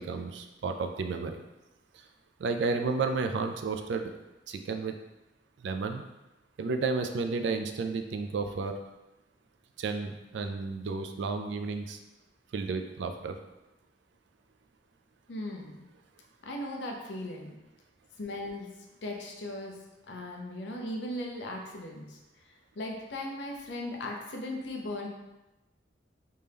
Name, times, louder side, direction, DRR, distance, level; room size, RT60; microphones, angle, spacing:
voice 1, 0.0-1.4 1.9-2.0 2.4-4.1 4.5-4.9 5.6-6.0 6.6-8.8 9.8-12.0 12.5-13.4, right 4 dB, 65° right, 6 dB, 0.4 m, -32 dB
voice 2, 15.3-15.8 16.4-17.6 18.2-18.7 19.0-19.8 20.1-22.2 22.8-25.1, left 1 dB, 65° left, 0 dB, 0.7 m, -37 dB
3.4 x 2.8 x 3.5 m, 1.0 s
head